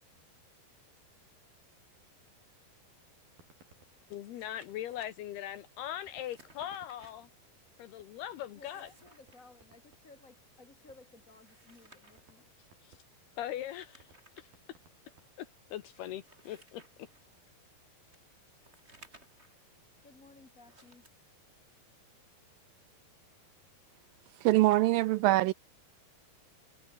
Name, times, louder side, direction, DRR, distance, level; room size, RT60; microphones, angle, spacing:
sound 1, 3.2-5.1 6.1-8.5 8.8-8.9 9.2-11.3 11.7-11.8 12.1-15.8, right 4 dB, 60° right, 9.0 m, -64 dB
voice 1, 4.1-7.3 7.8-8.9 12.8-13.0 13.4-14.1 14.4-14.5 15.4-16.9, left 12 dB, 75° left, 3.3 m, -40 dB
sound 2, 4.1-5.1 6.1-7.1 8.4-9.4 11.2-12.3 13.5-14.5 15.1-15.2 15.8-17.2 18.1-19.6 20.6-21.1, right 2 dB, 15° right, 6.0 m, -60 dB
voice 2, 8.5-12.5 20.0-21.1, left 3 dB, 25° left, 2.5 m, -57 dB
voice 3, 24.4-25.5, right 18 dB, 85° right, 2.0 m, -24 dB
omnidirectional pair, 4.7 m